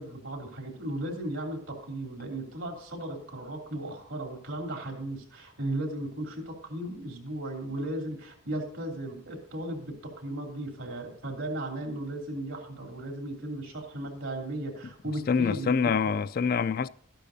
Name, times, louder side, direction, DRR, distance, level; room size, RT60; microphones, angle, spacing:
voice 1, 0.0-16.1, right 1 dB, 80° right, 3.0 m, -36 dB
voice 2, 15.3-16.9, left 5 dB, 45° left, 0.3 m, -25 dB
13.0 x 11.5 x 2.7 m
head